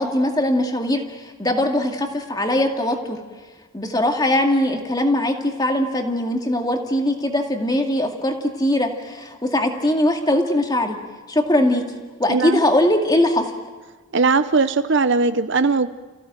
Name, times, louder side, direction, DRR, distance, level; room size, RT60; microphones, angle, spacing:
voice 1, 0.0-3.2 3.7-11.0 11.3-11.8 12.2-13.5, left 1 dB, 20° left, 3 dB, 2.1 m, -21 dB
voice 2, 12.3-12.6 14.1-15.9, right 4 dB, 55° right, 12 dB, 0.6 m, -19 dB
29.5 x 16.0 x 9.0 m, 1.3 s
head